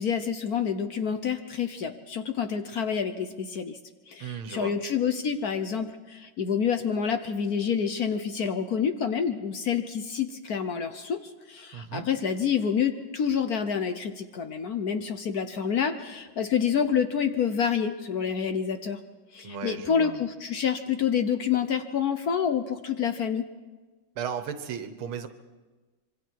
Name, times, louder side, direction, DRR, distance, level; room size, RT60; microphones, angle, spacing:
voice 1, 0.0-3.8 4.1-11.2 11.5-19.0 19.3-23.5, left 7 dB, 55° left, 8 dB, 1.2 m, -28 dB
voice 2, 4.2-4.7 11.7-12.1 19.4-20.2 24.2-25.3, right 7 dB, 80° right, 9 dB, 2.0 m, -35 dB
25.5 x 23.5 x 4.7 m, 1.3 s
omnidirectional pair, 2.3 m